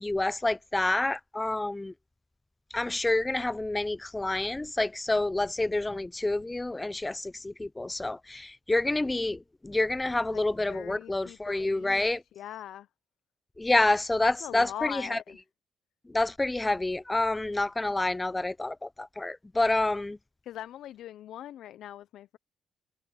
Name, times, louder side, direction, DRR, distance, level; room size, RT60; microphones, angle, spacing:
voice 1, 0.0-1.9 2.7-12.2 13.6-15.2 16.1-20.2, left 2 dB, 15° left, 0.5 m, -28 dB
voice 2, 10.7-12.9 14.2-15.4 20.4-22.4, left 12 dB, 75° left, 0.5 m, -41 dB
cardioid pair, 90°, 0 cm